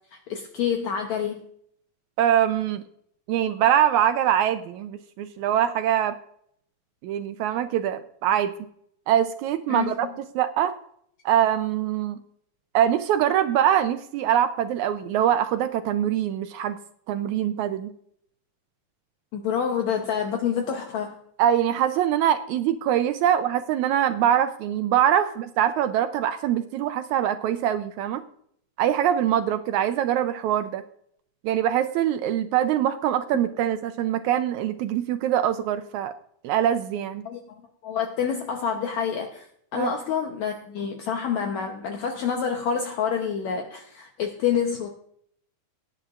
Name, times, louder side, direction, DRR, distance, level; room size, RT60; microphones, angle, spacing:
voice 1, 0.1-1.4 9.7-10.1 19.3-21.2 37.3-39.5 39.7-44.9, left 7 dB, 70° left, 3 dB, 2.0 m, -28 dB
voice 2, 2.2-2.8 3.3-6.2 7.0-8.5 9.1-10.1 10.3-10.7 11.2-12.2 12.7-16.8 17.1-17.9 21.4-28.2 28.8-30.8 31.4-36.1 36.4-37.2 39.7-39.9, right 10 dB, 80° right, 10 dB, 1.8 m, -23 dB
18.0 x 10.0 x 2.4 m, 0.67 s
omnidirectional pair, 3.7 m